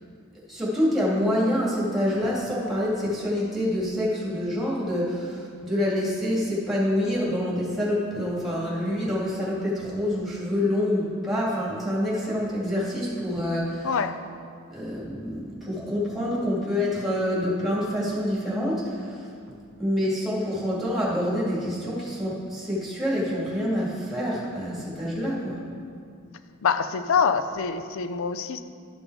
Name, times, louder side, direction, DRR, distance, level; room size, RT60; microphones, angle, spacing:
voice 1, 0.5-13.9 14.7-19.3 19.8-25.6, left 1 dB, ahead, -6 dB, 2.2 m, -27 dB
voice 2, 13.8-14.2 26.6-28.6, left 6 dB, 65° left, 11 dB, 0.5 m, -25 dB
11.5 x 5.3 x 4.7 m, 2.2 s
head